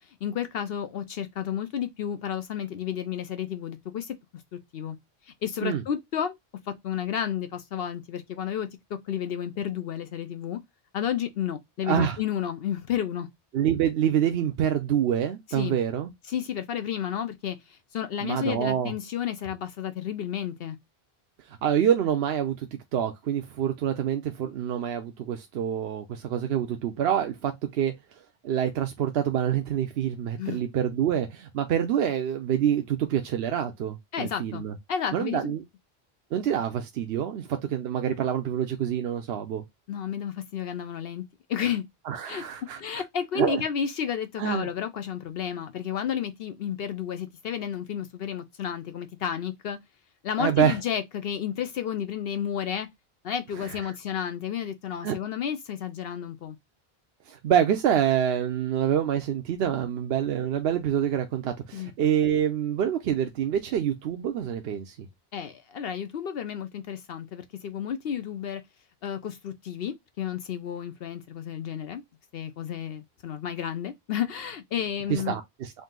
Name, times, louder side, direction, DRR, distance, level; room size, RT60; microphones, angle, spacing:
voice 1, 0.0-5.0 5.2-6.3 6.7-10.6 10.9-13.3 15.5-15.8 16.3-20.8 30.4-30.6 34.1-34.6 34.9-35.6 39.9-41.2 41.5-41.8 42.3-42.4 42.8-49.8 50.2-52.9 53.2-56.6 61.7-61.9 65.3-68.6 69.0-72.0 72.3-75.4, left 9 dB, 70° left, 0.8 m, -32 dB
voice 2, 11.8-12.2 13.5-16.1 18.2-18.9 21.5-27.9 28.4-34.7 35.1-35.6 36.3-39.6 42.1-43.0 43.3-43.6 44.4-44.7 50.4-50.8 53.6-53.8 55.0-55.2 57.3-65.1 75.1-75.7, right 9 dB, 75° right, 0.8 m, -26 dB
3.9 x 2.6 x 3.6 m
omnidirectional pair, 1.1 m